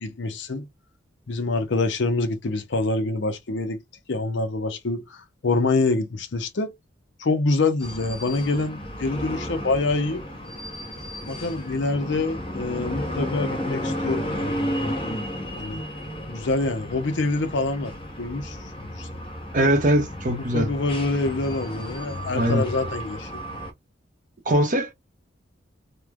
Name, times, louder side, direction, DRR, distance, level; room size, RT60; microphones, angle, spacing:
voice 1, 0.0-0.7 1.3-3.8 4.1-6.7 7.2-10.2 11.3-14.5 15.6-15.8 16.3-17.9 18.2-19.1 20.5-23.3, left 3 dB, 60° left, 0.6 m, -26 dB
sound 1, 7.8-23.7, equal, 25° left, 0.8 m, -33 dB
voice 2, 19.5-20.7 22.3-22.7 24.5-24.9, right 1 dB, 40° right, 0.7 m, -21 dB
3.1 x 2.1 x 2.3 m
head